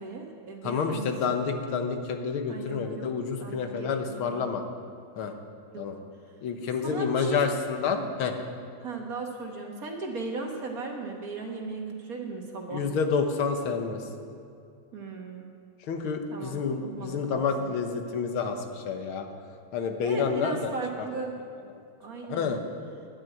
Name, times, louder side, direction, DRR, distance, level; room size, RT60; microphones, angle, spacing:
voice 1, 0.0-1.1 2.5-3.1 3.4-4.5 5.7-5.9 6.8-7.4 8.8-12.9 14.9-15.5 16.3-17.7 20.0-21.4 22.0-22.5, right 3 dB, 45° right, 1 dB, 1.7 m, -37 dB
voice 2, 0.6-4.6 5.2-5.3 5.8-6.0 6.4-8.3 12.7-14.0 15.9-19.3 19.7-20.7 22.3-22.6, left 5 dB, 85° left, 5 dB, 2.0 m, -29 dB
10.5 x 9.7 x 9.1 m, 2.5 s
omnidirectional pair, 2.2 m